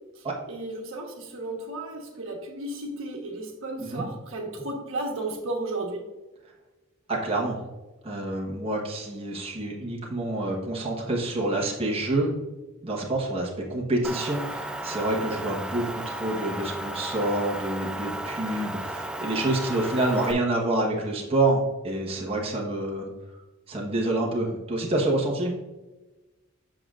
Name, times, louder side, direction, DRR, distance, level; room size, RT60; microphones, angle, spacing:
voice 1, 0.5-6.0, right 2 dB, 70° right, 0 dB, 1.2 m, -34 dB
voice 2, 7.1-7.6 8.0-12.3 12.8-23.1 23.7-25.5, right 2 dB, 30° right, -2 dB, 1.2 m, -27 dB
Motor vehicle (road) / Engine, 14.0-20.3, right 1 dB, 5° right, 0.3 m, -34 dB
7.7 x 6.1 x 2.5 m, 1.1 s
head